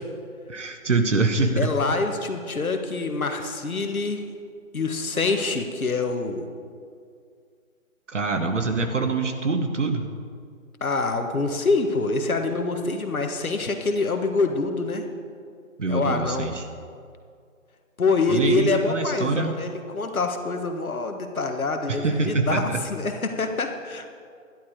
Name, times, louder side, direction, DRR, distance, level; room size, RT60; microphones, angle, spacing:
voice 1, 0.5-1.7 8.1-10.1 15.8-16.6 18.3-19.6 21.9-22.8, right 3 dB, 60° right, 6 dB, 1.3 m, -24 dB
voice 2, 1.6-4.2 4.7-6.5 10.8-15.0 15.9-16.5 18.0-24.1, left 3 dB, 80° left, 5 dB, 1.6 m, -25 dB
11.5 x 11.5 x 4.8 m, 2.2 s
hypercardioid pair, 175°, 42 cm